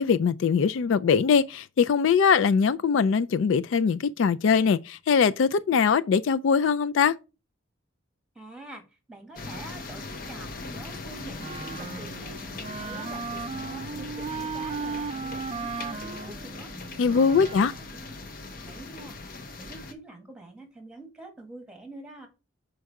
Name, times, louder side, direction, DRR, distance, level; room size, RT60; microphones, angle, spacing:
voice 1, 0.0-7.2 17.0-17.7, left 6 dB, 70° left, 0.3 m, -22 dB
voice 2, 8.3-12.4 12.7-16.7 17.2-18.1 18.6-22.3, right 2 dB, 5° right, 1.5 m, -46 dB
sound 1, 9.4-19.9, left 3 dB, 45° left, 0.8 m, -40 dB
Wind instrument woodwind instrument, 11.4-17.9, right 5 dB, 30° right, 0.3 m, -36 dB
6.3 x 4.6 x 4.7 m
head